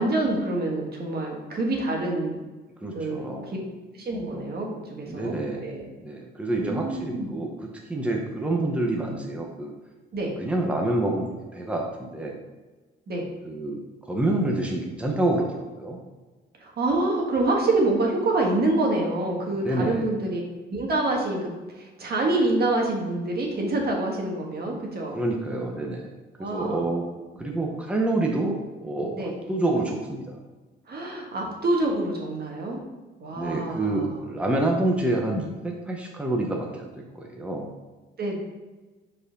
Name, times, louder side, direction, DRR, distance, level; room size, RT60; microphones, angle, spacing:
voice 1, 0.0-2.4 2.9-3.6 3.9-5.9 6.6-7.3 10.1-10.3 13.1-13.3 16.6-20.4 20.7-25.2 26.4-26.9 27.4-27.9 29.2-29.3 30.9-32.8 33.2-34.2 38.2-38.4, right 2 dB, 55° right, 0 dB, 1.6 m, -26 dB
voice 2, 2.8-3.6 5.1-7.5 7.9-9.7 10.4-12.4 13.4-13.8 14.1-16.0 19.6-20.1 25.1-26.1 26.4-27.0 27.4-28.6 28.8-29.1 29.5-30.2 33.4-36.9 37.1-37.7, right 2 dB, 5° right, 0 dB, 0.9 m, -27 dB
4.9 x 4.3 x 5.2 m, 1.2 s
cardioid pair, 90°, 20 cm